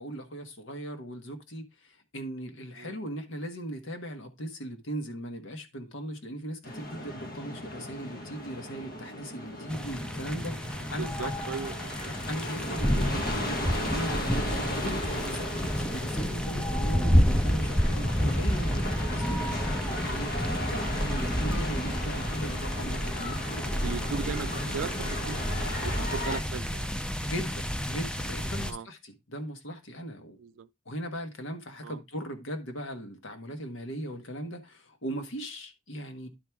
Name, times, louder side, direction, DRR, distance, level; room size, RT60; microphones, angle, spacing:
voice 1, 0.0-11.3 12.3-13.3 13.7-23.9 27.2-30.4 30.8-36.3, equal, 90° left, 1.4 m, -38 dB
sound 1, 6.6-26.4, left 1 dB, 45° left, 1.3 m, -37 dB
sound 2, 9.7-28.7, equal, 5° left, 0.4 m, -30 dB
voice 2, 11.0-11.9 23.8-25.4 25.7-26.9 28.6-28.9 30.4-30.7 31.8-32.0, right 6 dB, 75° right, 0.4 m, -37 dB
11.0 x 4.6 x 3.5 m
head